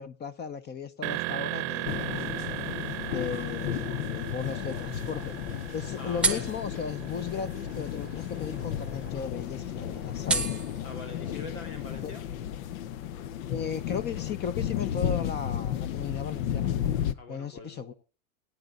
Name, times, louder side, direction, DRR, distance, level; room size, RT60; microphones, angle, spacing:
voice 1, 0.0-2.2 3.1-5.4 5.7-10.6 12.0-12.1 13.5-16.7 17.3-17.9, left 7 dB, 25° left, 0.8 m, -36 dB
sound 1, 1.0-8.8, right 21 dB, 55° right, 0.8 m, -37 dB
sound 2, 1.8-17.1, left 10 dB, 70° left, 0.9 m, -33 dB
sound 3, 4.6-12.0, right 3 dB, ahead, 1.0 m, -36 dB
voice 2, 6.0-6.5 10.8-12.2 17.1-17.9, left 3 dB, 85° left, 3.4 m, -43 dB
20.5 x 9.5 x 2.4 m
supercardioid pair, 130°, 43 cm